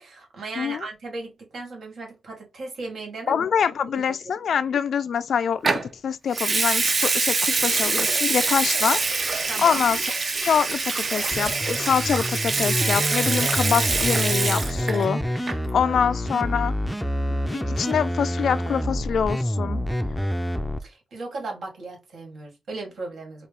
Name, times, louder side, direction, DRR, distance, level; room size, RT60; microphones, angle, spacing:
voice 1, 0.0-3.4 9.5-9.8 20.8-23.5, right 3 dB, 75° right, 1.9 m, -36 dB
voice 2, 3.3-5.6 6.0-9.0 9.6-10.0 10.4-16.7 17.4-19.8, left 7 dB, 75° left, 0.3 m, -25 dB
Water tap faucet / Sink (filling or washing) / Liquid, 5.6-5.9 6.3-15.1 15.3-15.7, right 3 dB, 40° right, 0.6 m, -24 dB
sound 1, 11.3-20.8, equal, 5° left, 0.4 m, -27 dB
4.3 x 2.4 x 3.4 m
wide cardioid pair, 110°, 0 cm